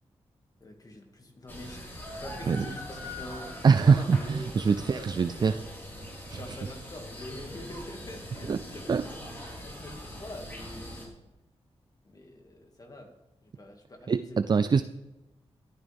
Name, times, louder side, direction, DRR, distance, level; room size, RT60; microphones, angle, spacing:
voice 1, 0.6-5.7 6.3-11.1 12.0-13.1 13.4-14.4, left 1 dB, 35° left, 2 dB, 2.3 m, -45 dB
sound 1, 1.5-11.1, left 1 dB, 20° left, 4.6 m, -42 dB
voice 2, 3.6-5.6 6.3-6.6 8.5-8.6 8.9-9.0 14.1-14.8, right 5 dB, 40° right, 12 dB, 0.4 m, -23 dB
14.0 x 12.0 x 3.6 m, 1.0 s
wide cardioid pair, 110°, 11 cm